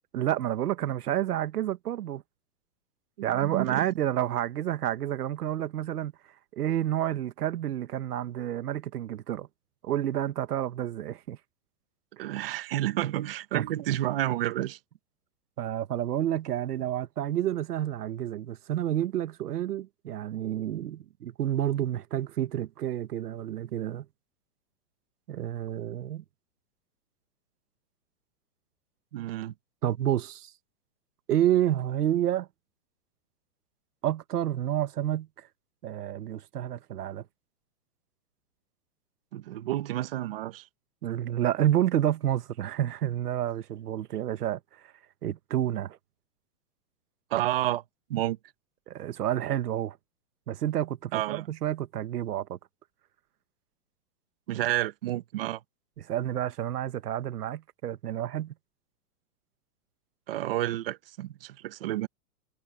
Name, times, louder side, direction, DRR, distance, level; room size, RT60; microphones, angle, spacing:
voice 1, 0.1-2.2 3.2-6.1 6.5-9.5 9.8-11.4 13.5-13.9 15.6-24.0 25.3-26.2 29.8-30.5 31.3-32.5 34.0-35.3 35.8-37.2 41.0-44.6 45.2-46.0 48.9-50.0 50.5-52.6 56.0-58.5, right 12 dB, 85° right, 1.4 m, -29 dB
voice 2, 3.3-3.8 12.2-14.8 29.1-29.5 39.3-40.6 47.3-47.8 48.1-48.4 51.1-51.5 54.5-55.6 60.3-62.1, right 14 dB, 40° right, 1.4 m, -30 dB
supercardioid pair, 180°, 45 cm